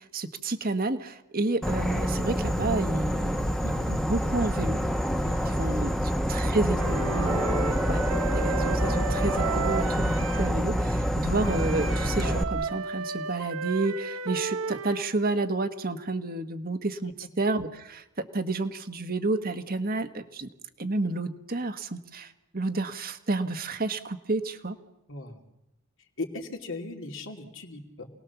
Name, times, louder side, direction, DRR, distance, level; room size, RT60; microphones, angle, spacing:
voice 1, 0.0-4.8 5.6-5.9 6.3-7.4 7.7-8.1 8.3-20.5 20.8-24.8, right 2 dB, 45° right, 8 dB, 1.5 m, -30 dB
Insect / Frog, 1.6-12.4, equal, ahead, 1.3 m, -27 dB
voice 2, 5.1-6.0 6.4-6.6 25.1-25.4 26.2-28.1, left 2 dB, 65° left, 2 dB, 2.9 m, -38 dB
Wind instrument woodwind instrument, 6.8-10.6 11.4-15.1, right 5 dB, 90° right, 1.0 m, -34 dB
28.0 x 19.5 x 7.2 m, 0.88 s
head